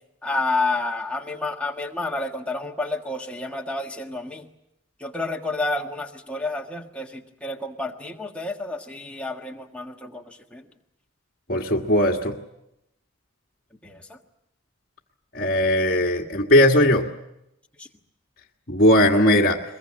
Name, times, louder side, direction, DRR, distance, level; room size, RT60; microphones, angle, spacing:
voice 1, 0.2-4.5 5.0-10.6 13.8-14.2 17.8-17.9, left 2 dB, 5° left, 1 dB, 1.5 m, -30 dB
voice 2, 11.5-12.3 15.3-17.0 18.7-19.6, left 1 dB, 45° left, -3 dB, 1.6 m, -18 dB
22.5 x 21.5 x 8.7 m, 0.83 s
head